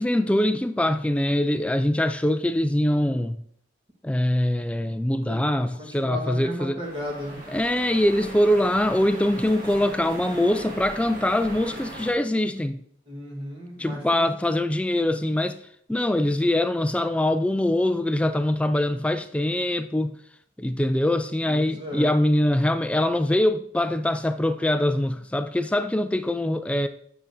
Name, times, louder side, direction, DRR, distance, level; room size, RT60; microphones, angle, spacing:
voice 1, 0.0-3.4 4.0-6.8 7.5-12.8 13.8-15.6 15.9-20.2 20.6-26.9, left 1 dB, 5° left, 0.3 m, -23 dB
voice 2, 5.8-7.4 13.1-14.3 21.5-22.1, equal, 25° right, 1.3 m, -34 dB
sound 1, 6.8-12.1, right 1 dB, 45° right, 1.8 m, -39 dB
9.7 x 6.7 x 2.6 m
head